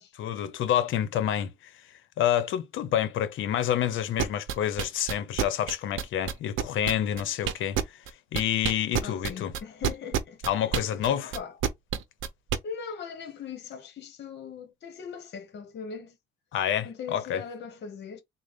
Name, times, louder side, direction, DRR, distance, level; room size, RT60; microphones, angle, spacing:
voice 1, 0.2-1.5 2.2-8.0 8.3-9.5 10.5-11.3 16.5-17.4, left 10 dB, 80° left, 0.7 m, -28 dB
sound 1, 4.2-8.1 8.3-12.6, right 9 dB, 80° right, 0.7 m, -28 dB
voice 2, 9.0-10.4 11.2-11.5 12.6-16.2 16.8-18.2, left 6 dB, 60° left, 1.0 m, -40 dB
3.9 x 2.1 x 3.4 m
cardioid pair, 90°, 20 cm